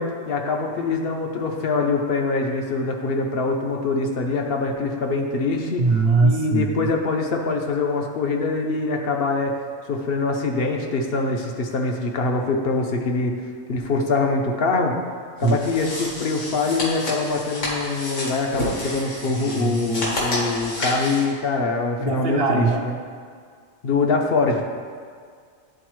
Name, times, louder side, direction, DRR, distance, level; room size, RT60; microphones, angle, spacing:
voice 1, 0.0-5.8 6.2-9.6 9.9-13.3 13.7-15.0 15.4-22.9 23.8-24.6, left 3 dB, 55° left, 2 dB, 0.8 m, -24 dB
voice 2, 5.8-6.9 15.4-15.6 19.3-20.0 22.0-22.9, right 4 dB, 60° right, 2 dB, 0.8 m, -21 dB
sound 1, 15.4-21.3, left 1 dB, 80° left, 1.9 m, -30 dB
10.5 x 4.0 x 3.1 m, 2.1 s
omnidirectional pair, 1.3 m